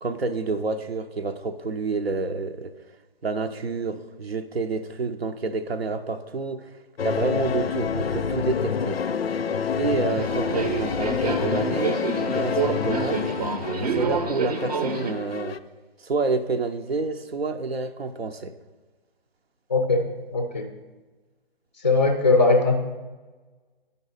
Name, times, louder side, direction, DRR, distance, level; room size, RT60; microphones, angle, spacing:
voice 1, 0.0-2.7 3.2-6.7 7.0-9.0 9.8-12.0 12.3-13.3 13.8-15.6 16.0-18.6, right 3 dB, 85° right, 0.7 m, -28 dB
sound 1, 7.0-15.6, left 6 dB, 90° left, 0.5 m, -28 dB
Subway metro underground, 10.1-15.1, right 5 dB, 40° right, 0.6 m, -28 dB
voice 2, 19.7-20.7 21.8-22.8, left 3 dB, 15° left, 0.4 m, -20 dB
10.5 x 5.4 x 4.1 m
figure-of-eight pair, 145°, 30 cm